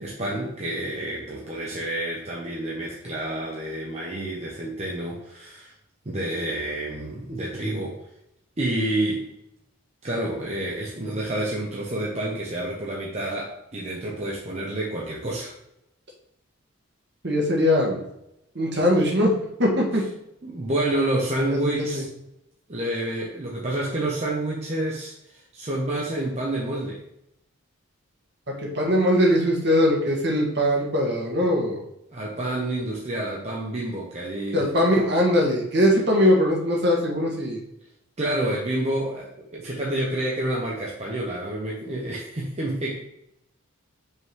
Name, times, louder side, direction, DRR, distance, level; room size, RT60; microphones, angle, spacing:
voice 1, 0.0-5.7 6.1-8.0 8.6-9.3 10.0-15.5 20.4-22.1 22.7-27.0 32.1-34.6 38.2-43.0, right 1 dB, 30° right, -3 dB, 0.8 m, -29 dB
voice 2, 17.2-18.0 18.5-19.3 19.6-20.0 21.5-22.0 28.6-31.8 34.5-37.6, equal, 55° right, -1 dB, 1.5 m, -21 dB
5.5 x 3.8 x 4.7 m, 0.80 s
head